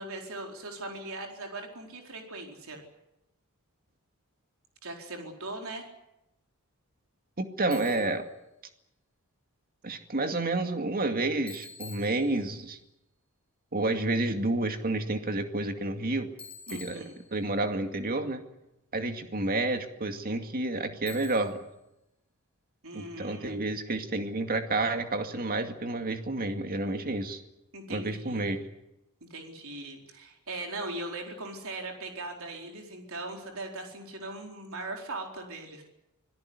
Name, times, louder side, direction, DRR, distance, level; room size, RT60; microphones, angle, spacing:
voice 1, 0.0-2.8 4.8-5.8 16.7-17.2 22.8-23.6 27.7-28.6 29.3-35.8, right 2 dB, 65° right, 2 dB, 4.4 m, -39 dB
voice 2, 7.4-8.3 9.8-12.8 13.7-16.3 16.7-17.0 17.3-18.4 18.9-21.6 22.9-27.4 27.9-28.7, right 2 dB, 40° right, 6 dB, 2.3 m, -30 dB
Bicycle, 7.7-8.2 11.5-12.7 16.4-17.6 21.1-21.7, left 5 dB, 5° left, 6.6 m, -48 dB
25.5 x 17.5 x 9.7 m, 0.90 s
head